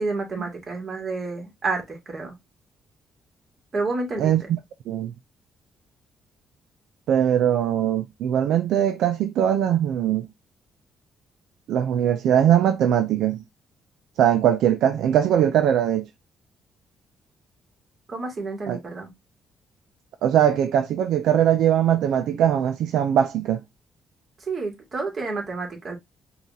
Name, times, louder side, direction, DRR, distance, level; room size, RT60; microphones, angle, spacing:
voice 1, 0.0-2.3 3.7-4.5 18.1-19.1 24.5-26.0, right 3 dB, 40° right, 1.9 m, -29 dB
voice 2, 4.2-4.6 4.9-5.1 7.1-10.3 11.7-13.4 14.2-16.1 18.7-18.8 20.2-23.6, right 10 dB, 80° right, 0.4 m, -21 dB
5.3 x 2.5 x 2.7 m
cardioid pair, 90°, 0 cm